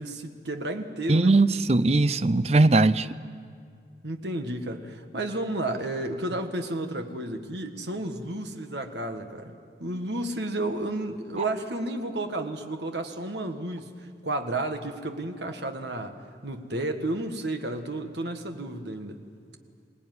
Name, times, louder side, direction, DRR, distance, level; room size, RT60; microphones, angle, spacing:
voice 1, 0.0-1.4 4.0-9.5 9.8-13.9 14.2-16.2 16.4-19.2, right 1 dB, 70° right, 5 dB, 1.7 m, -32 dB
voice 2, 1.1-3.1 11.4-11.5, right 2 dB, 35° right, 14 dB, 0.5 m, -20 dB
25.0 x 18.5 x 9.5 m, 2.2 s
head